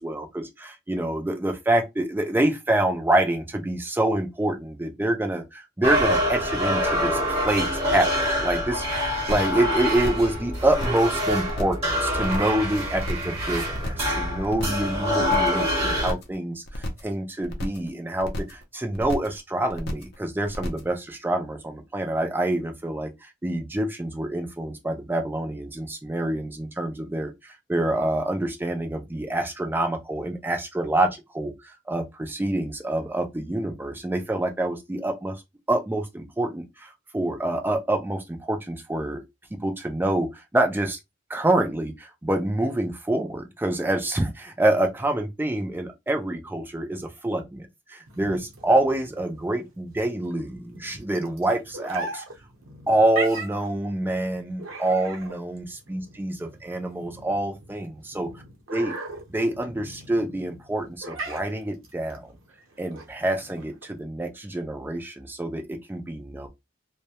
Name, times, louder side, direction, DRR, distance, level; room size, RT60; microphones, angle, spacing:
voice 1, 0.0-35.4 35.7-39.2 39.5-41.0 41.3-52.2 52.9-58.3 58.7-59.0 59.3-62.3 62.8-66.5, right 1 dB, 10° right, 0.3 m, -26 dB
sound 1, 5.8-16.1, equal, 30° right, 1.1 m, -26 dB
sound 2, 9.3-9.6 9.9-10.3 10.6-11.1 11.4-11.9 12.2-12.6 12.9-13.4 13.7-14.1 14.4-14.9 15.2-15.6 15.9-16.4 16.7-17.1 17.4-17.9 18.2-18.6 18.9-19.4 19.7-20.2 20.5-20.9, left 1 dB, 50° left, 0.5 m, -32 dB
sound 3, 48.1-64.0, right 3 dB, 85° right, 0.7 m, -39 dB
2.2 x 2.1 x 2.7 m
head